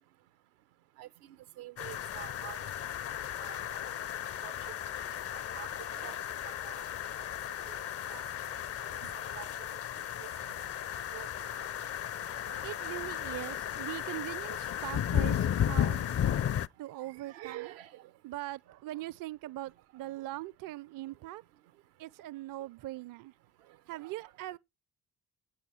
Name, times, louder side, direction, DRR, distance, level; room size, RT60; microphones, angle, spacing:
voice 1, 1.6-2.6 3.4-3.6 4.4-4.5 5.5-5.7 5.9-6.2 6.4-6.8 8.1-8.2 9.0-9.5 10.2-10.3 11.1-11.3 17.2-18.0 24.0-24.1, right 14 dB, 80° right, 0.8 m, -46 dB
sound 1, 1.8-16.7, left 10 dB, 35° left, 0.5 m, -34 dB
voice 2, 12.4-16.1 16.8-17.7 18.2-21.4 22.0-23.3 23.9-24.6, right 16 dB, 50° right, 0.5 m, -41 dB
11.0 x 8.6 x 4.4 m
hypercardioid pair, 50°, 44 cm